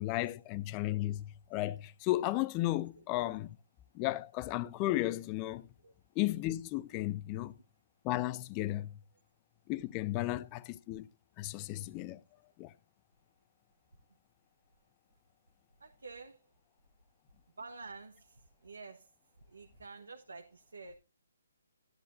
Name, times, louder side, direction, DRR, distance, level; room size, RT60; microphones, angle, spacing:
voice 1, 0.0-3.5 3.9-5.7 6.2-7.5 8.0-8.9 9.7-11.1 11.4-12.2 12.6-12.7, left 16 dB, 25° left, 0.6 m, -34 dB
voice 2, 15.8-16.4 17.6-18.3 18.6-19.1 19.5-21.0, right 4 dB, 80° right, 1.2 m, -48 dB
13.5 x 10.5 x 2.6 m
hypercardioid pair, 150°, 0 cm